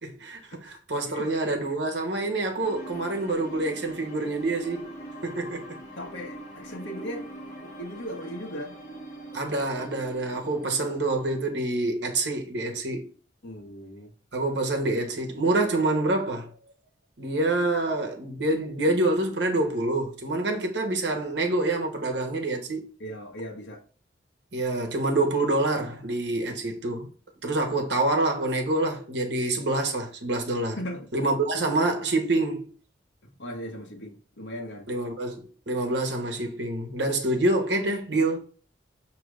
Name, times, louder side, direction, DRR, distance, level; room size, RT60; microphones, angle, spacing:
voice 1, 0.0-4.9 5.2-5.8 9.3-13.1 14.3-16.5 17.2-22.9 24.5-27.1 27.4-30.8 31.1-32.7 34.9-38.4, right 2 dB, 65° right, 1.1 m, -27 dB
sound 1, 2.6-11.4, right 1 dB, 40° left, 1.2 m, -42 dB
voice 2, 6.0-8.8 13.4-14.1 23.0-23.8 30.8-31.1 33.2-34.9, equal, 80° left, 1.0 m, -38 dB
5.0 x 2.9 x 3.2 m
head